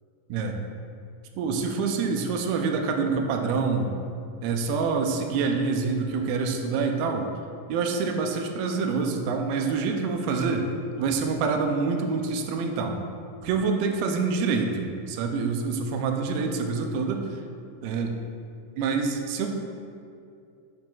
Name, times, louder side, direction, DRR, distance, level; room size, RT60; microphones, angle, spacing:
voice 1, 1.4-3.9 4.4-7.3 7.7-10.7 11.0-13.0 13.4-17.3 17.8-18.2 18.8-19.5, right 4 dB, 85° right, 3 dB, 2.5 m, -26 dB
8.8 x 5.8 x 2.3 m, 2.4 s
omnidirectional pair, 4.2 m